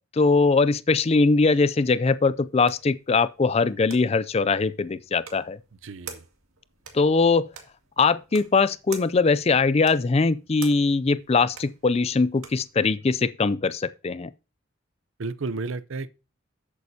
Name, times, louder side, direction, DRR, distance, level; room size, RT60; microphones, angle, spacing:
voice 1, 0.1-5.6 6.9-7.5 8.0-14.3, left 4 dB, 30° left, 0.4 m, -21 dB
sound 1, 2.0-12.7, right 6 dB, 85° right, 2.0 m, -47 dB
voice 2, 5.8-6.2 15.2-16.1, right 3 dB, 65° right, 0.6 m, -32 dB
11.0 x 8.4 x 2.8 m
head